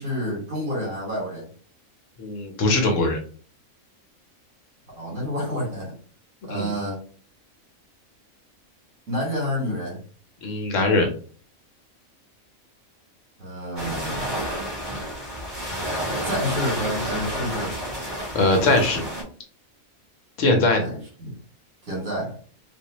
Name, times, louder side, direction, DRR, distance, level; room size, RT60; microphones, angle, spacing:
voice 1, 0.0-1.5 5.0-6.0 6.4-7.0 9.1-10.0 13.4-14.3 16.2-17.8 20.8-21.4 21.8-22.4, equal, 80° right, -4 dB, 2.6 m, -29 dB
voice 2, 2.2-3.2 6.5-6.7 10.4-11.1 18.3-19.0 20.4-20.9, left 2 dB, 65° left, 3 dB, 1.1 m, -21 dB
sound 1, 13.8-19.2, equal, 35° right, 2.0 m, -30 dB
4.0 x 2.5 x 2.9 m, 0.42 s
omnidirectional pair, 1.4 m